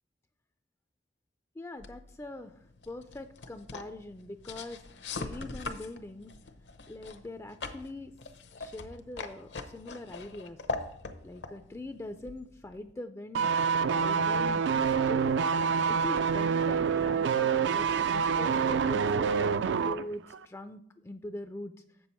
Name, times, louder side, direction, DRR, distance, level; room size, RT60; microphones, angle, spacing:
voice 1, 1.6-6.3 6.9-8.1 8.6-10.6 11.2-13.5 13.8-15.3 15.9-21.7, left 2 dB, 15° left, 8 dB, 0.3 m, -43 dB
sound 1, 1.8-12.9, left 3 dB, 70° left, 0.7 m, -42 dB
sound 2, 13.3-20.0 20.3-20.4, right 6 dB, 75° right, 0.4 m, -27 dB
7.6 x 6.9 x 4.3 m, 0.70 s
head